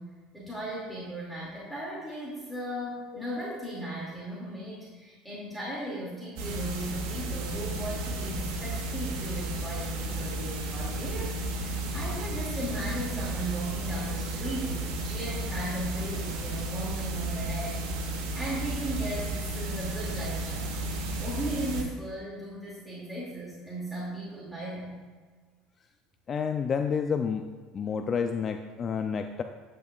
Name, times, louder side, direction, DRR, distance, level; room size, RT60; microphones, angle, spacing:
voice 1, 0.0-18.1 18.3-20.8 21.2-24.9, right 1 dB, ahead, -7 dB, 2.4 m, -37 dB
sound 1, 6.4-21.8, right 2 dB, 80° right, 1.9 m, -33 dB
voice 2, 26.3-29.4, left 6 dB, 30° left, 6 dB, 0.4 m, -30 dB
10.0 x 9.5 x 2.4 m, 1.4 s
supercardioid pair, 125°, 0 cm